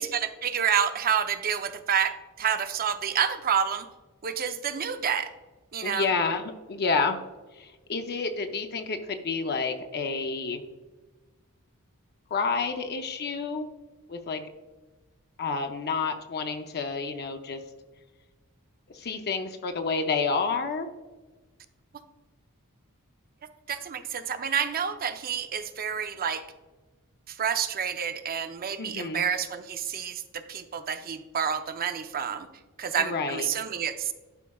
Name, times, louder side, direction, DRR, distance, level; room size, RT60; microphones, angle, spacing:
voice 1, 0.0-3.9 4.2-5.3 5.7-6.1 23.7-26.4 27.3-32.5 32.8-34.1, right 7 dB, 40° right, 9 dB, 0.5 m, -29 dB
voice 2, 5.8-7.2 7.6-10.6 12.3-13.7 14.1-14.4 15.4-17.6 18.9-20.9 28.8-29.2 33.0-33.5, left 4 dB, 45° left, 6 dB, 0.6 m, -29 dB
11.5 x 4.8 x 2.3 m, 1.2 s
head